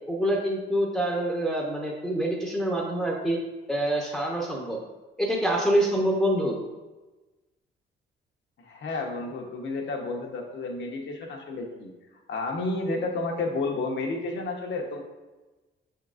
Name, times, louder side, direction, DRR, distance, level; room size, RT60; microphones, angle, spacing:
voice 1, 0.1-3.4 3.7-4.8 5.2-6.6, right 1 dB, ahead, -3 dB, 0.8 m, -26 dB
voice 2, 8.6-11.9 12.3-15.0, left 3 dB, 65° left, 1 dB, 1.0 m, -31 dB
5.8 x 3.7 x 2.5 m, 1.2 s
cardioid pair, 90°, 20 cm